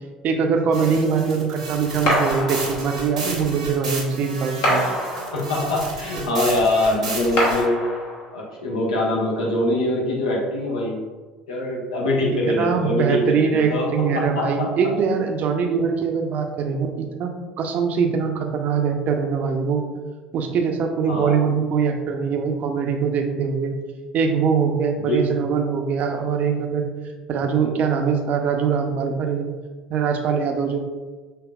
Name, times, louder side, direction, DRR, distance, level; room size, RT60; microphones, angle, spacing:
voice 1, 0.2-4.8 12.5-17.3 17.6-19.8 20.3-23.7 24.1-26.9 27.3-29.5 29.9-30.8, right 6 dB, 45° right, 4 dB, 0.6 m, -22 dB
sound 1, 0.7-7.6, right 3 dB, 80° right, 1.0 m, -33 dB
sound 2, 2.1-3.2 4.6-5.8 7.4-8.4, equal, 55° left, 1.3 m, -24 dB
voice 2, 5.3-7.9 8.3-11.0 11.5-14.9 21.1-21.4 25.0-25.3, left 1 dB, 75° left, -3 dB, 1.0 m, -23 dB
5.8 x 3.3 x 2.3 m, 1.3 s
figure-of-eight pair, 65°, 4 cm